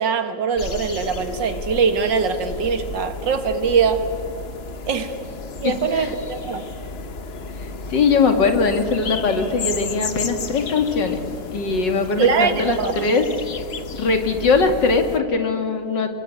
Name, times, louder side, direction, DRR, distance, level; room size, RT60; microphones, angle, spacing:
voice 1, 0.0-4.1 4.9-5.1 5.5-6.6 12.2-13.1, right 5 dB, 85° right, 8 dB, 2.3 m, -22 dB
sound 1, 0.6-15.2, left 4 dB, 40° left, 1.1 m, -33 dB
voice 2, 5.6-6.1 7.6-11.2 11.5-13.3 13.9-16.1, left 4 dB, 80° left, 5 dB, 2.8 m, -21 dB
28.5 x 22.5 x 8.6 m, 2.3 s
omnidirectional pair, 1.9 m